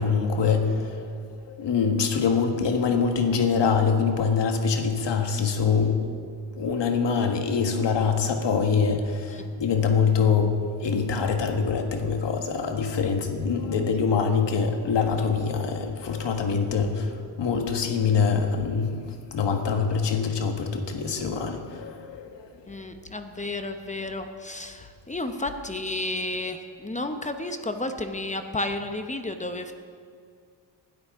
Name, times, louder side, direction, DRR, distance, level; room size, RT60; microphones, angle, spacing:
voice 1, 0.0-6.0 6.5-22.5, left 5 dB, 65° left, 5 dB, 1.5 m, -24 dB
voice 2, 22.7-29.7, left 2 dB, 15° left, 7 dB, 0.8 m, -32 dB
20.0 x 12.5 x 3.6 m, 2.2 s
cardioid pair, 105°, 46 cm